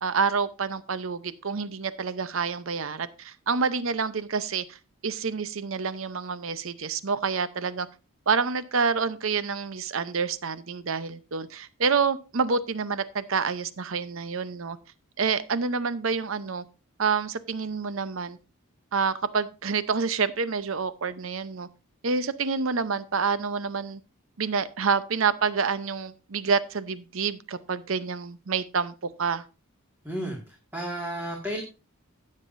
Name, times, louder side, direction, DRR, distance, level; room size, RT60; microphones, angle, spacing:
voice 1, 0.0-4.8 5.0-7.9 8.3-14.8 15.2-16.6 17.0-18.4 18.9-21.7 22.0-24.0 24.4-28.9 29.2-29.4, right 5 dB, 65° right, 14 dB, 0.7 m, -28 dB
voice 2, 30.0-31.6, right 1 dB, 10° right, -1 dB, 1.9 m, -33 dB
16.0 x 7.6 x 2.6 m, 0.30 s
head